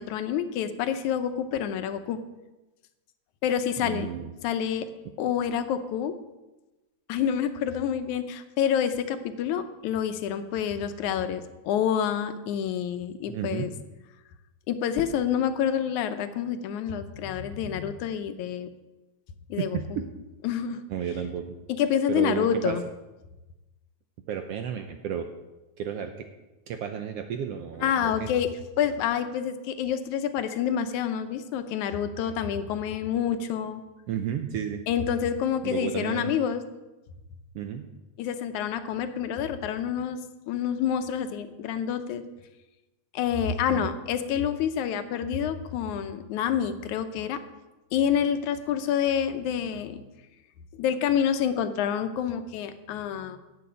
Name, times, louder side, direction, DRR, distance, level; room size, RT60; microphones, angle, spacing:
voice 1, 0.0-2.2 3.4-4.1 4.4-4.9 5.2-6.1 7.1-13.7 14.7-18.7 19.5-19.8 20.4-20.8 21.8-22.8 27.8-28.5 28.8-33.8 34.9-36.6 38.2-42.2 43.1-47.4 47.9-50.0 50.7-53.4, left 8 dB, 80° left, 10 dB, 2.2 m, -28 dB
voice 2, 3.8-4.3 13.3-13.7 19.6-20.0 20.9-21.4 22.1-22.8 24.3-25.3 25.8-26.3 26.7-28.3 34.1-34.8 35.6-36.3 37.5-37.9 43.7-43.9, right 8 dB, 75° right, 6 dB, 1.5 m, -32 dB
10.5 x 6.9 x 8.6 m, 1.1 s
omnidirectional pair, 3.4 m